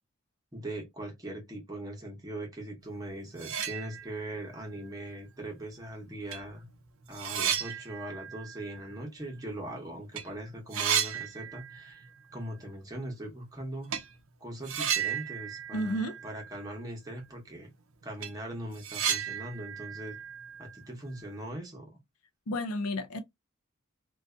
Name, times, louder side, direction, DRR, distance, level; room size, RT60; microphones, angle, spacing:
voice 1, 0.5-6.7 7.1-13.9 14.4-17.7 18.0-20.2 20.6-21.9, right 1 dB, 15° right, 0.8 m, -40 dB
sound 1, 3.0-3.1 3.3-4.4 4.8-4.9 5.8-5.9 6.3-9.8 10.0-10.2 10.5-12.1 12.3-12.4 13.9-14.1 14.6-16.8 17.1-17.2 17.6-17.7 18.0-21.2, right 8 dB, 65° right, 0.5 m, -34 dB
voice 2, 15.7-16.2 22.5-23.2, equal, 85° left, 0.5 m, -31 dB
2.6 x 2.3 x 2.2 m
head